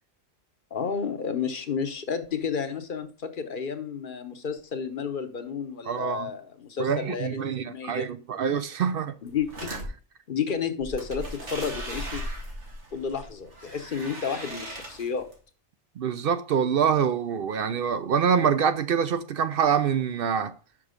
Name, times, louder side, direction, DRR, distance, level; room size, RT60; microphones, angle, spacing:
voice 1, 0.7-8.2 9.2-9.9 10.3-12.2 12.9-15.3, left 6 dB, 50° left, 0.9 m, -31 dB
voice 2, 5.9-6.3 6.8-9.1 9.7-9.8 16.0-20.5, right 7 dB, 65° right, 0.7 m, -25 dB
sound 1, 9.3-9.9 10.8-15.3, right 1 dB, 90° right, 2.2 m, -38 dB
6.1 x 5.9 x 5.0 m
omnidirectional pair, 1.2 m